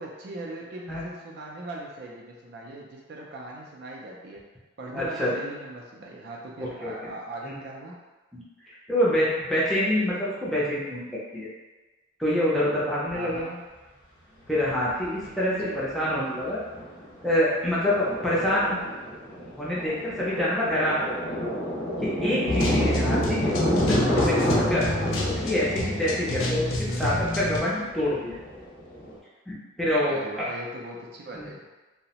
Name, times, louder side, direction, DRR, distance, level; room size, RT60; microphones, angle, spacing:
voice 1, 0.0-4.4 4.8-8.0 13.1-13.6 15.6-15.8 23.5-23.8 26.9-27.2 30.0-31.6, right 2 dB, 55° right, -1 dB, 0.4 m, -39 dB
voice 2, 4.9-5.3 6.6-6.9 7.5-7.6 8.3-8.4 8.7-11.5 12.2-13.5 14.5-16.6 17.2-18.8 19.6-21.2 22.0-24.9 25.3-28.4 29.5-30.2 31.3-31.5, left 1 dB, ahead, -8 dB, 0.5 m, -26 dB
Thunder, 13.1-13.2 14.5-15.3 15.6-15.7 16.1-16.4 16.7-29.1, equal, 70° left, 0.9 m, -29 dB
sound 1, 22.5-27.6, left 1 dB, 85° left, 0.4 m, -29 dB
2.7 x 2.0 x 2.8 m, 1.2 s
head